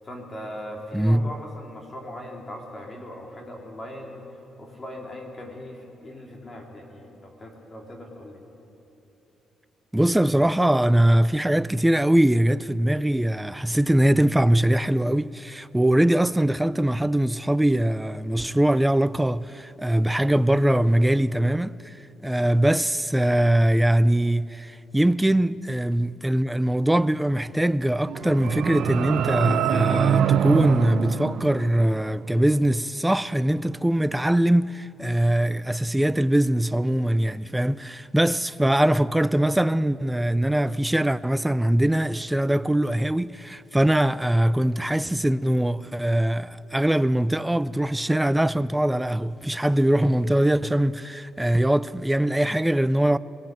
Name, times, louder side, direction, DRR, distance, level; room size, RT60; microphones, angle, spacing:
voice 1, 0.0-4.3 4.6-8.4, left 1 dB, 30° left, 3.4 m, -39 dB
voice 2, 0.9-1.3 9.9-22.0 22.2-53.2, right 1 dB, 10° right, 0.5 m, -22 dB
sound 1, 27.9-32.2, right 9 dB, 70° right, 0.9 m, -24 dB
22.0 x 16.5 x 9.1 m
cardioid pair, 90°, 0 cm